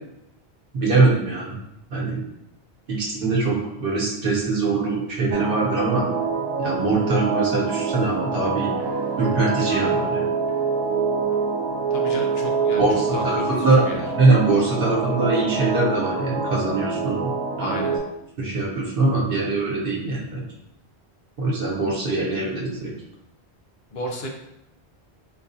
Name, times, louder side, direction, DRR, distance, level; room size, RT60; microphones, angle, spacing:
voice 1, 0.7-1.6 1.9-2.2 2.9-6.1 6.6-8.7 9.2-10.2 12.8-13.8 14.2-17.3 17.6-17.8 18.4-20.5 21.4-22.9, right 3 dB, 60° right, -5 dB, 1.1 m, -22 dB
sound 1, 5.3-18.0, right 4 dB, 75° right, 0.9 m, -25 dB
voice 2, 11.9-14.0 17.6-18.0 23.9-24.3, equal, 70° left, 1 dB, 0.9 m, -32 dB
4.3 x 2.3 x 2.7 m, 0.81 s
omnidirectional pair, 1.1 m